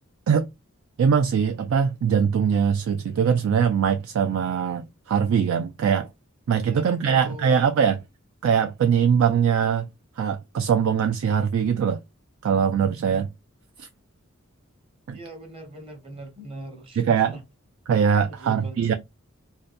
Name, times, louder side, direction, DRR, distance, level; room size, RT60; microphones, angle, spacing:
voice 1, 1.0-6.1 6.5-8.0 8.4-9.9 10.2-12.0 12.4-13.3 13.8-13.9 15.1-15.2 17.0-17.3 17.9-18.9, right 7 dB, 65° right, 0.3 m, -22 dB
voice 2, 6.6-7.7 15.1-17.4 18.3-18.9, right 1 dB, 25° right, 0.8 m, -41 dB
2.7 x 2.1 x 2.4 m
head